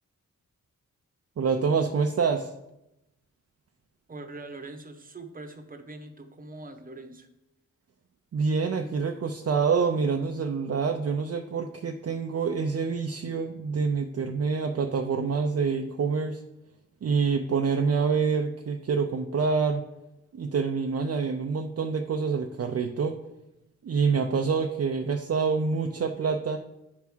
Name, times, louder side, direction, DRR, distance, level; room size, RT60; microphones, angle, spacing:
voice 1, 1.4-2.5 8.3-16.4 17.0-19.8 20.3-23.2 23.8-26.6, right 5 dB, 50° right, 3 dB, 0.5 m, -26 dB
voice 2, 4.1-7.3, right 2 dB, 25° right, 5 dB, 0.9 m, -42 dB
9.5 x 3.5 x 6.0 m, 0.90 s
wide cardioid pair, 120°, 33 cm